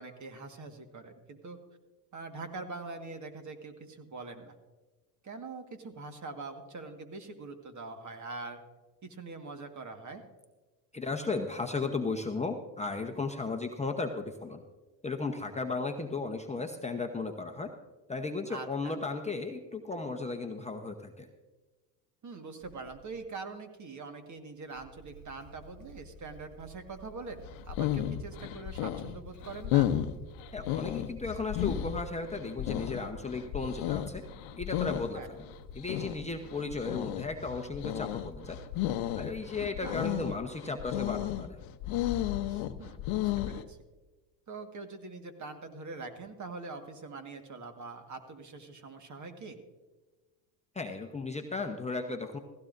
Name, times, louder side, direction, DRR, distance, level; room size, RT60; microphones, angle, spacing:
voice 1, 0.0-1.6 2.1-4.6 5.2-8.6 9.0-10.2 18.5-19.0 22.2-29.9 35.1-35.3 39.8-39.9 42.5-43.8 44.5-49.6, right 3 dB, 35° right, 7 dB, 1.7 m, -43 dB
voice 2, 10.9-14.6 15.0-17.7 18.1-21.3 30.5-34.2 34.6-35.2 35.7-38.6 39.2-41.6 50.7-52.4, left 3 dB, 15° left, 3 dB, 0.9 m, -35 dB
Motorcycle / Engine starting, 22.6-23.3 24.6-39.5, right 2 dB, 55° right, 4.3 m, -53 dB
sound 1, 27.4-43.6, left 12 dB, 65° left, 0.9 m, -33 dB
16.0 x 15.5 x 2.6 m, 1.2 s
supercardioid pair, 90°, 50 cm